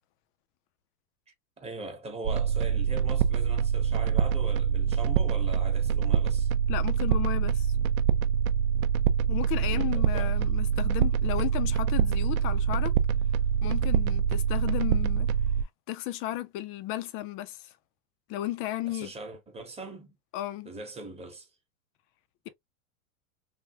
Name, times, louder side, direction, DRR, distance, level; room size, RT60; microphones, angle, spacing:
voice 1, 1.6-6.5 9.6-10.3 18.8-20.1 20.6-21.5, right 2 dB, 15° right, 0.9 m, -41 dB
sound 1, 2.2-15.6, right 7 dB, 75° right, 0.6 m, -25 dB
voice 2, 6.7-7.7 9.3-13.0 13.6-15.3 15.9-17.7 18.3-19.1 20.3-20.7, left 15 dB, 30° left, 0.4 m, -34 dB
3.5 x 2.1 x 2.7 m
hypercardioid pair, 125°, 42 cm